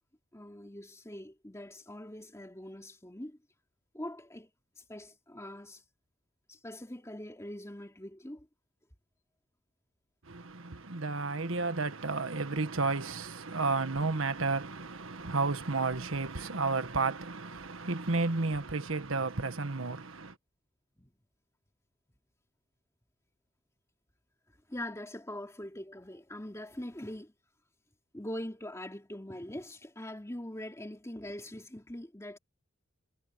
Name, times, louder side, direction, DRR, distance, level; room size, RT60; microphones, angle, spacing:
voice 1, 0.3-3.4 3.9-4.5 4.9-5.8 6.5-8.5 11.5-11.6 21.0-21.1 24.7-27.3 28.1-32.4, left 1 dB, 15° left, 3.0 m, -43 dB
voice 2, 10.3-20.3, right 3 dB, 85° right, 1.5 m, -32 dB
head